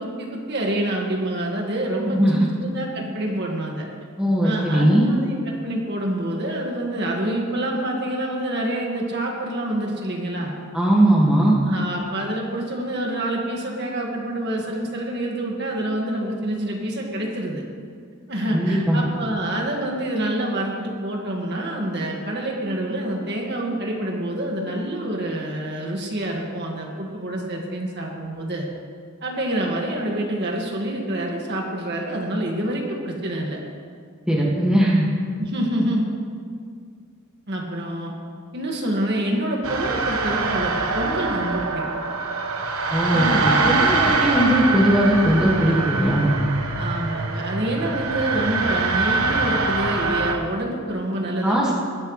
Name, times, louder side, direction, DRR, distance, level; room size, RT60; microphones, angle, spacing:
voice 1, 0.0-3.9 4.4-10.5 11.6-17.6 18.3-28.7 29.2-33.6 35.4-36.1 37.5-38.1 38.5-41.8 43.1-44.1 46.8-51.7, right 1 dB, 50° right, -1 dB, 1.9 m, -27 dB
voice 2, 2.0-2.5 4.2-5.0 10.7-11.5 18.5-19.0 34.3-35.1 42.9-46.3 51.4-51.7, right 1 dB, 5° right, -5 dB, 2.0 m, -19 dB
sound 1, 39.6-50.3, right 3 dB, 85° right, 1.2 m, -24 dB
20.5 x 11.5 x 3.3 m, 2.1 s
head